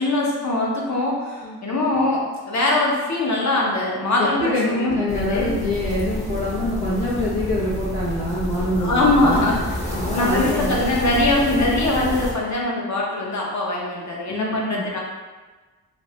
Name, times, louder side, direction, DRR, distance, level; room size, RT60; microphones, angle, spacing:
voice 1, 0.0-5.5 8.8-9.8 10.1-15.0, left 2 dB, 45° left, -3 dB, 0.9 m, -22 dB
voice 2, 4.2-9.5 9.9-10.7 14.3-14.8, left 1 dB, 70° left, -9 dB, 0.9 m, -25 dB
sound 1, 5.1-12.3, equal, 15° left, 0.8 m, -28 dB
3.1 x 2.5 x 2.8 m, 1.3 s
cardioid pair, 50°, 40 cm